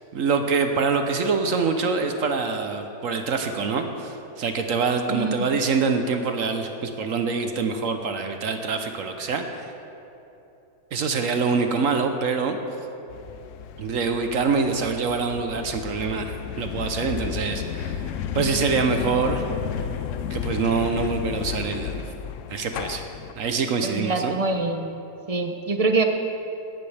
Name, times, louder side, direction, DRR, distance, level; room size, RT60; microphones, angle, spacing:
voice 1, 0.1-9.7 10.9-12.6 13.8-18.0 18.3-19.5 20.3-22.0 22.5-23.0 23.4-24.3, right 5 dB, 65° right, 5 dB, 1.1 m, -25 dB
voice 2, 5.1-5.4 23.8-24.9 25.3-26.0, right 3 dB, 40° right, 5 dB, 0.5 m, -24 dB
sound 1, 13.1-23.3, left 8 dB, 70° left, 0.8 m, -32 dB
17.0 x 12.5 x 3.4 m, 2.9 s
omnidirectional pair, 1.6 m